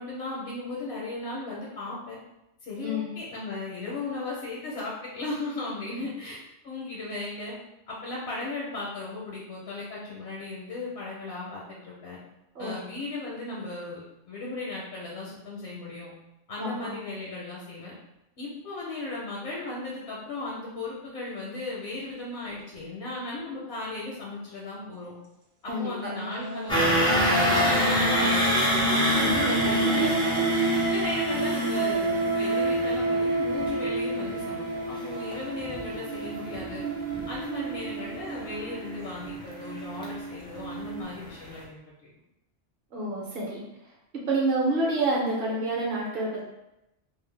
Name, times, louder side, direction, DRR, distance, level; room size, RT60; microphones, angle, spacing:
voice 1, 0.0-2.2 2.6-6.4 6.6-7.5 7.9-12.2 12.6-16.1 16.5-17.9 18.4-25.1 25.6-30.5 30.8-36.8 37.3-41.8, left 2 dB, 75° left, -5 dB, 0.9 m, -36 dB
voice 2, 2.8-3.2 12.5-12.8 16.6-16.9 25.7-26.1 29.1-29.4 42.9-43.6 44.3-46.5, right 2 dB, 60° right, -4 dB, 0.8 m, -28 dB
Ethereal Voices, 26.2-41.0, right 2 dB, 85° right, 1.0 m, -29 dB
sound 1, 26.7-40.7 41.1-41.3 41.6-41.7, equal, 10° left, 0.3 m, -28 dB
2.5 x 2.0 x 3.1 m, 0.88 s
omnidirectional pair, 1.2 m